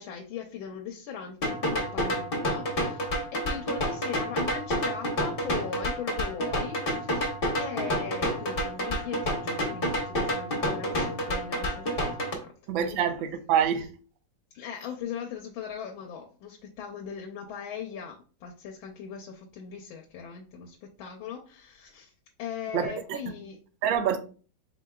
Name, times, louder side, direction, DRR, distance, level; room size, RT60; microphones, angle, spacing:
voice 1, 0.0-7.3 7.6-12.5 12.8-13.3 14.5-22.1 22.4-23.6, left 7 dB, 85° left, 1.4 m, -39 dB
sound 1, 1.4-12.3, equal, 45° left, 0.7 m, -29 dB
voice 2, 12.7-13.9 22.7-23.2 23.8-24.2, right 8 dB, 80° right, 1.4 m, -26 dB
4.5 x 4.1 x 2.2 m
omnidirectional pair, 2.2 m